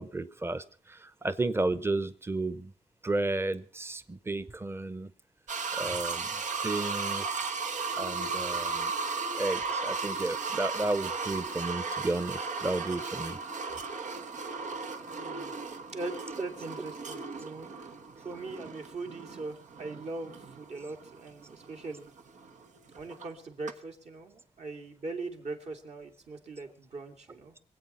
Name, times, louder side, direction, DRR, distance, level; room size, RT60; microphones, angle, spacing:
voice 1, 0.0-2.7 3.0-5.1 5.7-7.6 7.9-8.9 9.4-13.4, right 2 dB, 20° right, 15 dB, 0.8 m, -33 dB
sound 1, 5.5-23.3 23.7-23.8, right 4 dB, 85° right, 1.2 m, -36 dB
voice 2, 15.0-15.5 15.9-17.9 18.2-22.1 23.0-27.6, right 3 dB, 60° right, 3 dB, 2.6 m, -41 dB
24.0 x 8.4 x 5.6 m, 0.41 s
wide cardioid pair, 95°, 13 cm